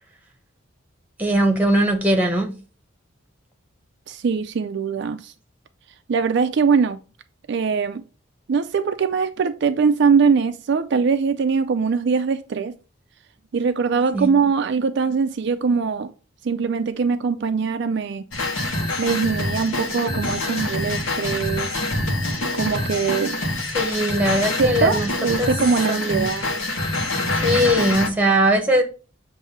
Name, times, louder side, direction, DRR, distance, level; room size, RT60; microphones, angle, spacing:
voice 1, 1.2-2.5 14.1-14.3 23.7-25.5 25.9-26.4 27.4-28.8, right 1 dB, 10° right, 1.2 m, -20 dB
voice 2, 4.1-5.3 6.1-7.0 7.5-8.0 8.5-12.7 13.5-16.1 16.4-18.3 19.0-21.7 22.5-23.4 24.6-26.6, right 5 dB, 60° right, 0.4 m, -22 dB
sound 1, 18.3-28.1, left 2 dB, 75° left, 1.2 m, -25 dB
7.1 x 2.7 x 5.5 m
head